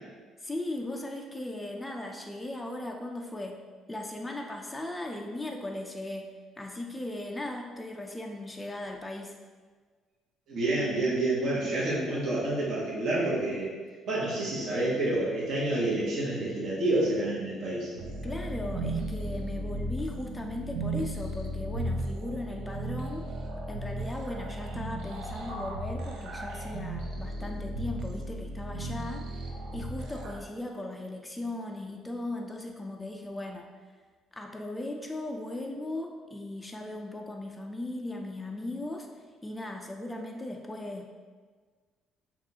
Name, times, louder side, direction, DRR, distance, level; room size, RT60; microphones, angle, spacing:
voice 1, 0.4-3.6 3.9-6.3 6.6-9.4 18.2-23.3 23.7-29.4 29.7-33.7 34.3-39.1 39.4-41.1, left 1 dB, 10° left, 2 dB, 0.3 m, -37 dB
voice 2, 10.5-13.7 14.1-17.9, right 2 dB, 60° right, -7 dB, 1.1 m, -28 dB
sound 1, 17.9-30.4, right 1 dB, 90° right, 0.6 m, -35 dB
5.8 x 2.4 x 2.8 m, 1.5 s
cardioid pair, 120°, 0 cm